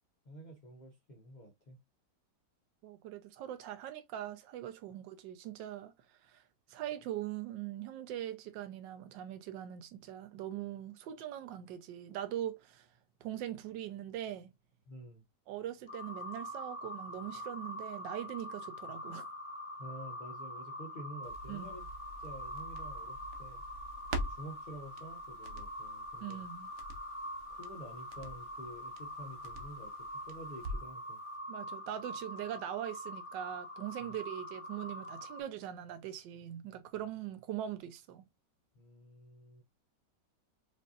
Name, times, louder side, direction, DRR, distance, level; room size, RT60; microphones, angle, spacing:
voice 1, 0.2-1.8 14.9-15.2 19.8-21.9 22.2-23.6 24.1-26.5 27.5-31.2 34.0-34.2 38.7-39.6, right 1 dB, 75° left, 0.4 m, -49 dB
voice 2, 2.8-5.9 6.2-6.4 6.7-12.9 13.2-14.5 15.5-19.3 21.5-21.7 26.2-26.7 31.5-38.2, right 11 dB, 90° right, 1.3 m, -41 dB
sound 1, 15.9-35.4, equal, 35° left, 1.2 m, -44 dB
Crackle, 21.2-31.0 31.3-31.4, right 1 dB, 60° right, 1.1 m, -46 dB
5.1 x 2.6 x 2.5 m
omnidirectional pair, 1.9 m